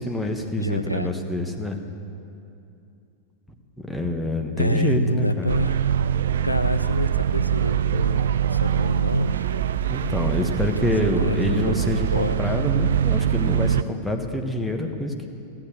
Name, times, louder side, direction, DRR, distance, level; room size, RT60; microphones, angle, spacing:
voice 1, 0.0-1.8 3.9-5.5 9.9-15.3, left 1 dB, 5° left, 3 dB, 1.3 m, -26 dB
voice 2, 0.6-1.1 4.6-5.8 6.4-9.5 11.2-12.4, equal, 90° left, 10 dB, 0.4 m, -26 dB
sound 1, 5.5-13.8, right 9 dB, 60° right, 0.3 m, -23 dB
14.5 x 9.9 x 7.7 m, 2.6 s
figure-of-eight pair, 90°, 0 cm